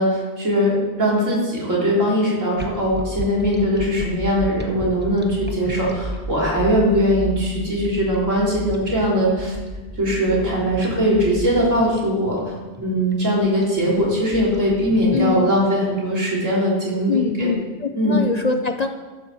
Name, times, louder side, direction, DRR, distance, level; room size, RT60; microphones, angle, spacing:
voice 1, 0.0-9.5 10.0-12.5 12.8-17.5 18.0-18.2, equal, 85° right, -5 dB, 4.2 m, -20 dB
sound 1, 2.6-15.7, equal, 10° right, 0.8 m, -33 dB
voice 2, 15.1-15.5 17.1-18.9, left 5 dB, 45° left, 6 dB, 0.5 m, -23 dB
12.0 x 7.3 x 6.8 m, 1.3 s
omnidirectional pair, 1.3 m